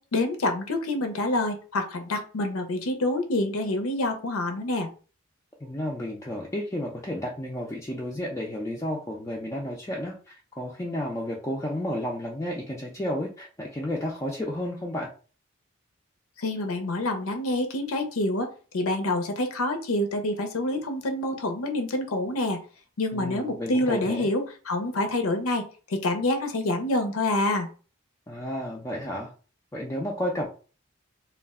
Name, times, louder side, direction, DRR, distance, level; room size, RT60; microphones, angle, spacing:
voice 1, 0.1-4.9 16.4-22.6 23.0-25.6 25.9-27.7, left 2 dB, 90° left, 5 dB, 0.5 m, -27 dB
voice 2, 5.6-15.1 23.1-24.3 28.3-29.3 29.7-30.5, left 1 dB, 15° left, -3 dB, 0.4 m, -32 dB
2.4 x 2.0 x 3.4 m, 0.37 s
head